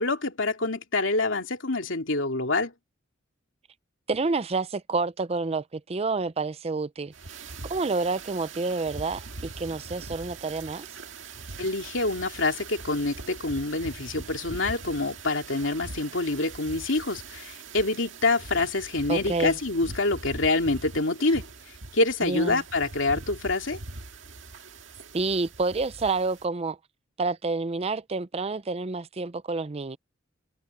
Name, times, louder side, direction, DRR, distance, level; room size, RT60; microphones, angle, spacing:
voice 1, 0.0-2.7 11.6-21.5 21.9-23.8, left 2 dB, 75° left, 2.8 m, -26 dB
voice 2, 4.1-7.1 7.7-10.9 19.1-19.6 22.2-22.6 25.1-26.8 27.2-30.0, right 3 dB, 30° right, 0.5 m, -28 dB
sound 1, 7.1-26.4, right 3 dB, 75° right, 2.0 m, -42 dB
head